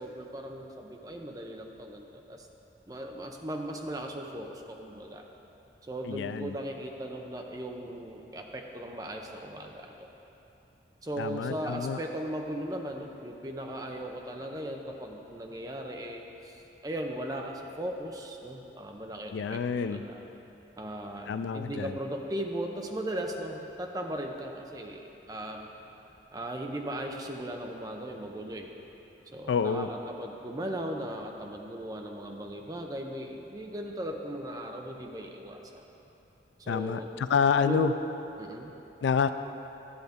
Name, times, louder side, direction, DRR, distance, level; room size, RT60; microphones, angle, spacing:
voice 1, 0.0-2.5 2.9-5.2 5.8-10.1 11.0-20.2 20.8-25.7 26.3-28.7 29.3-35.8 36.6-37.1 37.6-38.0 38.4-38.7, right 1 dB, 20° right, 2 dB, 0.6 m, -37 dB
voice 2, 6.0-6.5 11.2-12.0 19.3-20.0 21.3-22.0 29.5-29.9 36.7-37.9 39.0-39.3, left 6 dB, 90° left, 11 dB, 0.3 m, -28 dB
11.5 x 7.8 x 3.6 m, 3.0 s
head